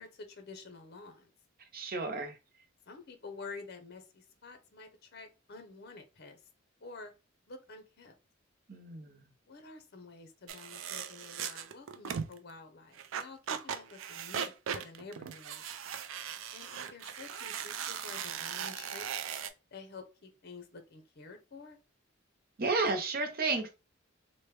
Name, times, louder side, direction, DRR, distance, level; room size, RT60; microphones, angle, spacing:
voice 1, 0.0-1.3 2.9-6.4 6.8-7.2 7.5-8.1 9.5-15.6 16.5-19.1 19.7-21.8, left 4 dB, 55° left, 7 dB, 0.7 m, -49 dB
voice 2, 1.7-2.4 8.7-9.3 22.6-23.7, right 3 dB, 50° right, 5 dB, 0.7 m, -32 dB
sound 1, 10.5-12.4 13.0-19.5, right 8 dB, 80° right, 0.4 m, -38 dB
3.1 x 2.2 x 3.2 m, 0.28 s
head